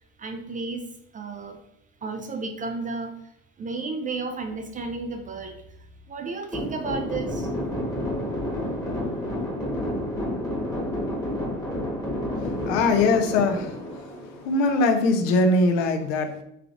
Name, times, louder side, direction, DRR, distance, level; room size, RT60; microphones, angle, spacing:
voice 1, 0.2-0.8 1.1-1.6 2.0-3.2 3.6-5.6 6.1-7.5, right 3 dB, 20° right, 5 dB, 0.3 m, -32 dB
sound 1, 6.5-14.8, left 1 dB, 10° left, 1.1 m, -30 dB
voice 2, 12.7-13.8 14.4-16.4, left 3 dB, 70° left, 5 dB, 0.6 m, -21 dB
3.5 x 3.3 x 2.4 m, 0.78 s
hypercardioid pair, 60°, 39 cm